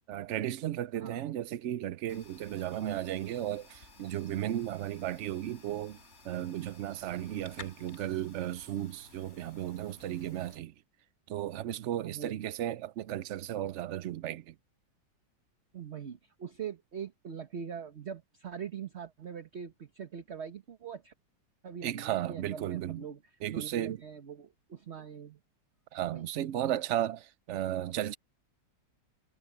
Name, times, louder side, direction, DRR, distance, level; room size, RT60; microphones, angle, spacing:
voice 1, 0.1-6.0 6.2-10.7 11.3-14.5 21.8-23.0 23.4-24.0 25.9-28.2, right 12 dB, 85° right, 0.6 m, -34 dB
sound 1, 2.1-10.6, left 3 dB, 40° left, 3.9 m, -55 dB
voice 2, 12.0-12.4 15.7-21.1 21.6-25.4 26.1-26.3, right 7 dB, 40° right, 1.4 m, -42 dB
omnidirectional pair, 1.9 m